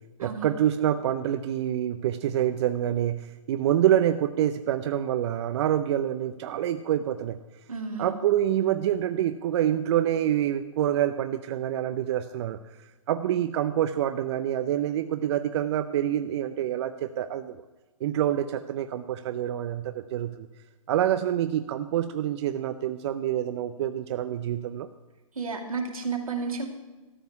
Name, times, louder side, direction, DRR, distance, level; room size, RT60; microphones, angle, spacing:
voice 1, 0.2-7.4 8.0-12.6 13.1-17.6 18.0-20.5 20.9-24.9, right 11 dB, 55° right, 9 dB, 0.6 m, -26 dB
voice 2, 7.7-8.1 25.4-26.7, right 5 dB, 90° right, 2 dB, 2.4 m, -31 dB
13.5 x 5.5 x 9.3 m, 1.2 s
hypercardioid pair, 125°, 17 cm